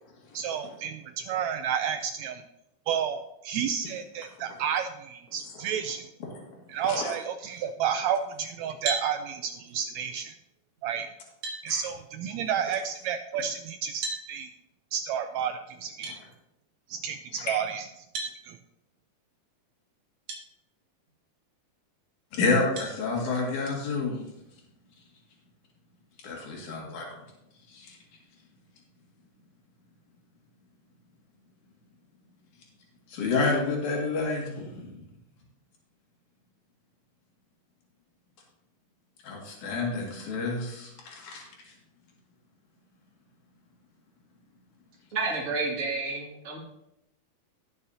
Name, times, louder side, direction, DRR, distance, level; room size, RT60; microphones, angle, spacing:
voice 1, 0.3-2.4 2.9-6.1 6.7-10.3 10.8-11.1 11.6-14.5 14.9-16.1 16.9-17.9 18.4-18.6, right 8 dB, 90° right, 7 dB, 1.6 m, -31 dB
sound 1, 8.8-9.1 10.8-10.9 11.4-11.6 14.0-14.2 16.0-16.2 18.1-18.4 20.3-20.4 21.1-21.2 22.8-23.0, right 3 dB, 60° right, 2.7 m, -32 dB
voice 2, 22.3-24.2 26.2-27.1 27.7-28.0 33.1-34.9 39.2-41.4, left 3 dB, 70° left, -1 dB, 3.5 m, -29 dB
voice 3, 45.1-46.6, right 3 dB, 25° right, -3 dB, 2.2 m, -30 dB
18.0 x 6.7 x 2.8 m, 0.84 s
omnidirectional pair, 3.7 m